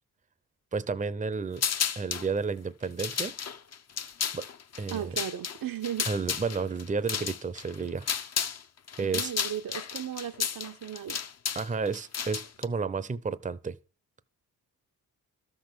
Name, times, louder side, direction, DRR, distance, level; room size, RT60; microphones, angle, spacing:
voice 1, 0.7-1.6 2.0-3.3 4.3-4.4 4.8-5.2 6.1-8.1 9.0-9.3 11.5-13.7, right 5 dB, 20° right, 0.6 m, -31 dB
sound 1, 1.6-2.3 2.8-8.6 8.9-12.7, left 7 dB, 40° left, 0.7 m, -33 dB
voice 2, 4.9-6.1 9.0-11.2, right 10 dB, 65° right, 0.7 m, -36 dB
13.0 x 6.0 x 6.7 m
cardioid pair, 90°, 38 cm